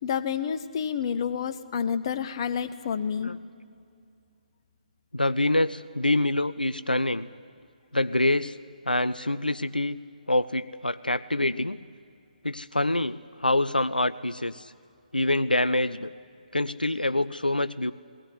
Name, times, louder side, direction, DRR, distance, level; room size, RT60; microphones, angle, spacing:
voice 1, 0.0-3.3, left 7 dB, 35° left, 11 dB, 0.8 m, -29 dB
voice 2, 5.1-7.3 7.9-8.6 8.9-10.0 10.3-11.8 12.4-14.7 15.1-16.1 16.5-17.9, left 1 dB, 85° left, 13 dB, 0.5 m, -26 dB
19.5 x 17.0 x 9.9 m, 2.4 s
figure-of-eight pair, 140°, 5 cm